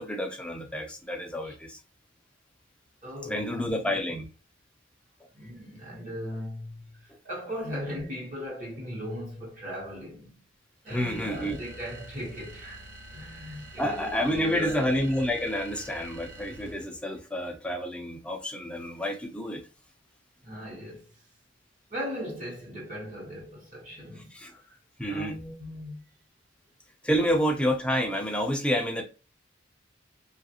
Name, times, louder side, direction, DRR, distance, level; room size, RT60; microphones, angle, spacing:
voice 1, 0.0-1.8 3.2-4.3 10.9-11.6 13.8-19.6 24.3-24.5 25.0-25.4 27.0-29.0, equal, 5° left, 0.5 m, -29 dB
voice 2, 3.0-3.7 5.3-10.4 10.8-12.9 13.1-14.9 20.4-21.1 21.9-24.4 24.7-24.8 25.0-26.0, equal, 45° right, 1.1 m, -38 dB
sound 1, 10.9-17.0, right 1 dB, 70° right, 0.7 m, -47 dB
3.1 x 2.4 x 2.8 m
head